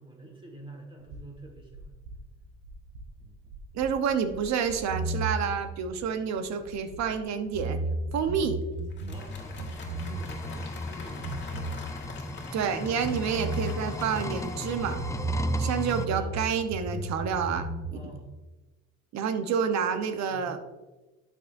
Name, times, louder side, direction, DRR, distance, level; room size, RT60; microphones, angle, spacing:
voice 1, 0.0-1.8 9.1-11.5 16.1-16.5 17.4-18.3 19.4-19.6 20.3-20.5, right 2 dB, 15° right, 0 dB, 1.6 m, -47 dB
sound 1, 1.0-7.2 7.5-10.6 10.8-12.7 13.0-16.4 16.7-17.9, right 3 dB, 90° right, 1.2 m, -35 dB
voice 2, 3.7-7.8 8.1-8.5 12.5-15.0 15.6-17.6 19.1-20.6, right 7 dB, 65° right, 8 dB, 1.0 m, -29 dB
Applause, 8.8-15.8, left 4 dB, 35° left, 1.8 m, -47 dB
sound 2, 9.1-16.1, left 2 dB, 10° left, 0.5 m, -36 dB
11.5 x 6.3 x 2.6 m, 1.1 s
cardioid pair, 100°, 30 cm